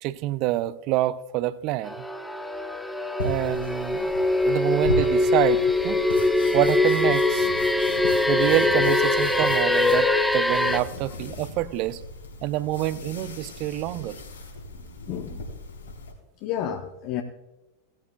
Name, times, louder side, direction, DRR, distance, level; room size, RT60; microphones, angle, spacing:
voice 1, 0.0-2.1 3.2-4.1 4.4-6.0 6.5-7.5 8.3-12.0 12.4-14.2, right 15 dB, 40° right, 0.5 m, -27 dB
sound 1, 1.8-10.8, left 2 dB, ahead, 0.8 m, -22 dB
sound 2, 3.2-16.1, left 2 dB, 70° left, 2.8 m, -37 dB
voice 2, 15.1-15.4 16.4-17.2, left 10 dB, 45° left, 0.8 m, -31 dB
17.5 x 13.0 x 2.3 m
figure-of-eight pair, 90°, 0 cm